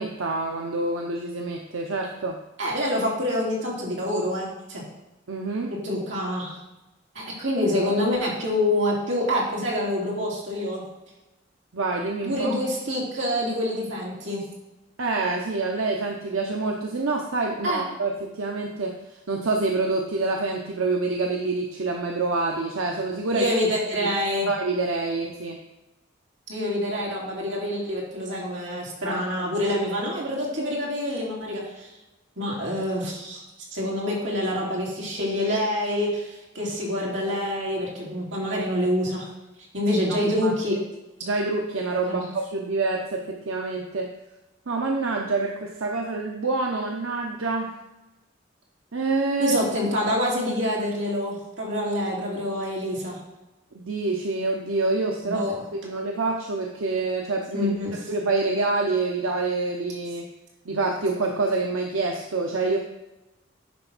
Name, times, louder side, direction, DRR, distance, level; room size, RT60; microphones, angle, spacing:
voice 1, 0.0-2.4 5.3-5.7 11.7-12.5 15.0-18.9 19.3-23.5 24.0-24.1 24.5-25.6 29.1-29.2 40.1-40.5 41.2-44.1 44.7-47.7 48.9-49.6 53.7-55.4 55.7-57.7 58.1-60.3 60.7-62.8, right 3 dB, 90° right, 1 dB, 0.8 m, -26 dB
voice 2, 2.6-4.8 5.8-6.6 7.1-10.8 12.2-14.4 17.6-17.8 23.2-24.5 26.5-31.9 32.4-33.4 33.7-39.3 39.7-40.8 42.1-42.3 49.4-53.2 55.2-55.6 57.5-58.1, left 1 dB, 65° right, -4 dB, 2.6 m, -26 dB
9.6 x 3.5 x 5.9 m, 0.99 s
head